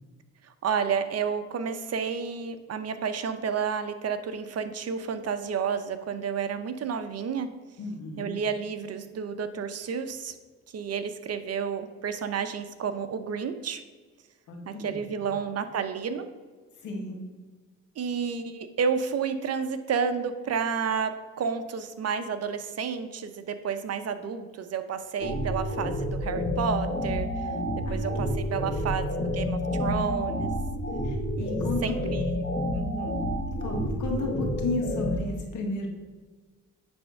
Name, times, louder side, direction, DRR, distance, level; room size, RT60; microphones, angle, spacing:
voice 1, 0.4-7.5 8.2-10.4 10.7-13.8 14.7-16.3 18.0-27.5 27.9-29.1 29.3-30.5 31.4-32.4 32.7-33.2, right 6 dB, 55° right, 9 dB, 0.9 m, -31 dB
voice 2, 7.8-8.4 14.5-15.1 16.8-17.2 27.8-28.1 28.5-29.4 31.0-32.0 33.5-35.9, left 2 dB, 80° left, 1 dB, 2.0 m, -34 dB
sound 1, 25.2-35.2, left 1 dB, 35° left, 1.5 m, -29 dB
9.9 x 3.5 x 6.5 m, 1.4 s
cardioid pair, 90°, 30 cm